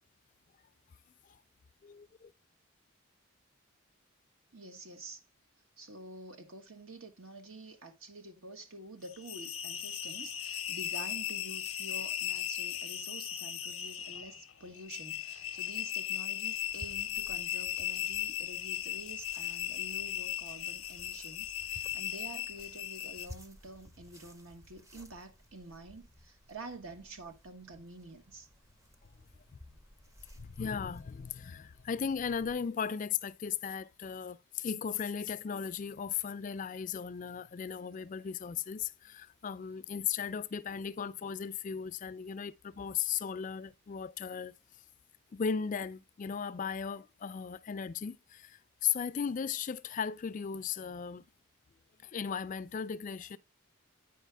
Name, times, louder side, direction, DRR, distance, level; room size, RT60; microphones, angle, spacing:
voice 1, 1.8-2.3 29.5-29.6 30.4-44.5 45.3-51.2 52.0-53.4, left 7 dB, 40° left, 0.3 m, -36 dB
voice 2, 4.5-5.2 5.8-28.5, right 2 dB, 80° right, 1.4 m, -48 dB
sound 1, 9.0-23.3, left 11 dB, 80° left, 0.6 m, -37 dB
sound 2, 16.5-32.5, left 1 dB, 15° right, 0.6 m, -56 dB
9.1 x 4.8 x 3.4 m
head